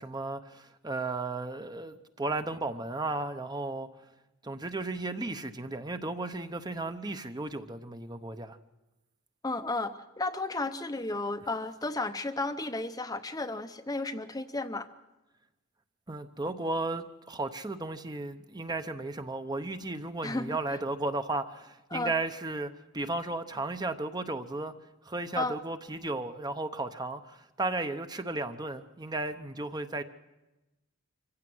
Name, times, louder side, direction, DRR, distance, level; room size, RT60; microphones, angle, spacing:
voice 1, 0.0-3.9 4.4-8.6 16.1-24.7 25.0-30.0, right 2 dB, 20° right, 0.8 m, -34 dB
voice 2, 9.4-14.9 20.2-20.6 21.9-22.1 25.3-25.6, left 2 dB, 15° left, 0.7 m, -33 dB
25.0 x 15.5 x 7.8 m
head